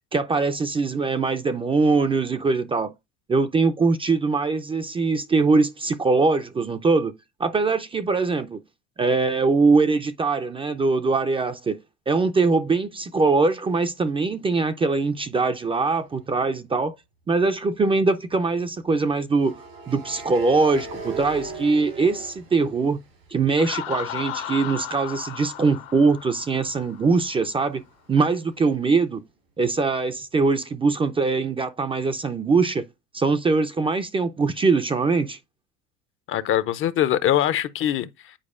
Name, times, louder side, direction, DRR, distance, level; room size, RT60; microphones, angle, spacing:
voice 1, 0.1-2.9 3.3-7.1 7.4-8.6 9.0-11.8 12.1-16.9 17.3-19.6 19.9-23.0 23.3-27.8 28.1-29.2 29.6-32.9 33.1-35.4, right 4 dB, 20° right, 0.4 m, -22 dB
sound 1, 16.0-16.3 19.3-23.2 23.6-27.2, right 3 dB, 80° right, 4.4 m, -40 dB
Laughter, 23.6-27.2, left 12 dB, 80° left, 1.1 m, -35 dB
voice 2, 36.3-38.3, left 11 dB, 45° left, 0.6 m, -23 dB
8.7 x 4.6 x 2.4 m
supercardioid pair, 90°, 30 cm